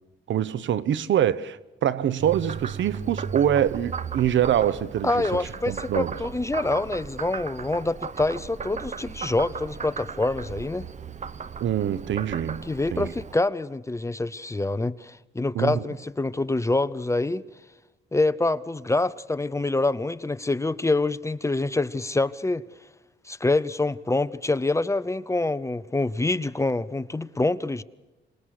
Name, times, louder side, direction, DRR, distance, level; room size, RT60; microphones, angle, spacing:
voice 1, 0.3-5.3 5.7-6.1 11.6-12.6 12.9-13.1 15.5-15.8, right 10 dB, 75° right, 0.9 m, -24 dB
Frog, 2.2-13.4, right 6 dB, 40° right, 0.9 m, -36 dB
voice 2, 5.0-10.9 12.7-17.4 18.1-22.6 23.2-27.8, left 2 dB, 15° left, 0.7 m, -26 dB
26.0 x 20.5 x 6.6 m
cardioid pair, 95°, 19 cm